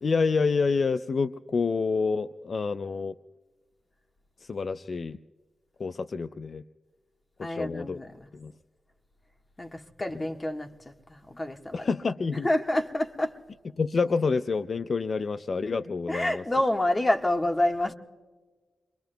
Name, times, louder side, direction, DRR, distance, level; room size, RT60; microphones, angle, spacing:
voice 1, 0.0-3.1 4.4-5.2 5.8-6.6 7.5-8.0 8.3-8.5 11.7-12.5 13.8-16.4, left 4 dB, 60° left, 0.4 m, -28 dB
voice 2, 7.4-8.3 9.6-11.9 12.4-13.4 16.1-17.9, left 1 dB, 30° left, 1.5 m, -28 dB
28.0 x 22.5 x 2.2 m
cardioid pair, 45°, 0 cm